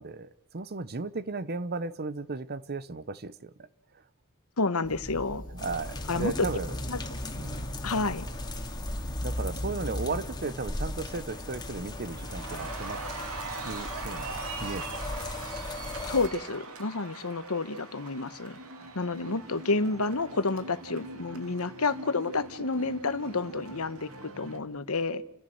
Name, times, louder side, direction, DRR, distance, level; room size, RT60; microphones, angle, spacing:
voice 1, 0.0-3.7 5.5-6.7 7.4-7.6 9.2-13.0 13.6-14.3 14.6-15.0, right 3 dB, 45° right, 0.8 m, -35 dB
voice 2, 4.6-5.4 6.1-6.5 6.9-7.0 7.8-8.2 16.1-18.6 18.9-25.2, left 3 dB, 75° left, 1.2 m, -29 dB
sound 1, 4.8-10.2, equal, 40° left, 2.5 m, -37 dB
sound 2, 5.6-16.3, left 2 dB, 20° left, 2.6 m, -38 dB
Cheering, 9.7-10.1 10.5-24.6, right 3 dB, 75° right, 2.9 m, -42 dB
29.5 x 15.0 x 7.9 m
head